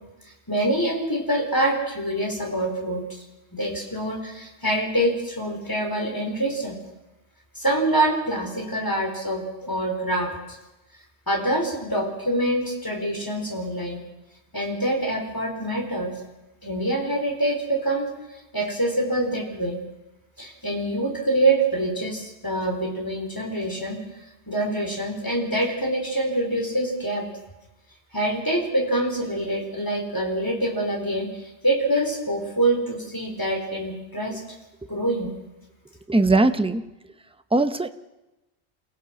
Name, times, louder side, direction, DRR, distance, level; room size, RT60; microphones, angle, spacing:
voice 1, 0.5-3.2 3.5-6.8 7.5-10.3 11.3-14.0 14.5-16.1 16.6-18.1 18.5-19.8 20.4-24.0 24.5-27.2 28.1-34.4 34.9-35.3, right 1 dB, 20° left, 0 dB, 4.5 m, -25 dB
voice 2, 36.1-36.8 37.5-37.9, right 2 dB, 5° right, 9 dB, 0.7 m, -19 dB
28.5 x 16.5 x 6.0 m, 1.0 s
omnidirectional pair, 1.1 m